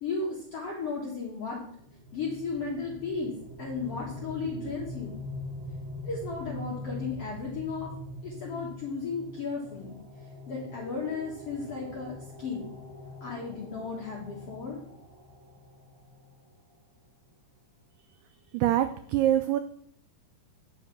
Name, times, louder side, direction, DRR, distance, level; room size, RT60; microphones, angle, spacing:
voice 1, 0.0-1.7 2.1-3.3 3.6-5.2 6.0-7.9 8.2-10.0 10.5-12.7 13.2-14.8, left 4 dB, 55° left, -3 dB, 2.0 m, -35 dB
sound 1, 1.7-16.4, left 2 dB, 70° right, 1.0 m, -43 dB
voice 2, 18.5-19.6, right 12 dB, 90° right, 8 dB, 1.8 m, -24 dB
9.1 x 5.7 x 5.8 m, 0.67 s
omnidirectional pair, 4.3 m